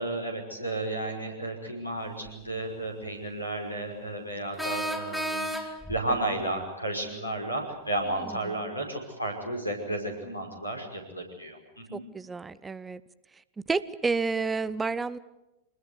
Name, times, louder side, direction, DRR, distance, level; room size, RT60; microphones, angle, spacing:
voice 1, 0.0-11.6 11.9-12.0, right 1 dB, 85° left, 4 dB, 5.6 m, -33 dB
sound 1, 2.3-2.4 4.6-6.0, equal, ahead, 2.8 m, -32 dB
voice 2, 8.2-8.6 11.9-13.0 13.3-13.4 13.7-15.2, right 4 dB, 15° right, 17 dB, 0.8 m, -30 dB
26.0 x 20.5 x 8.3 m, 0.95 s
figure-of-eight pair, 90°, 0 cm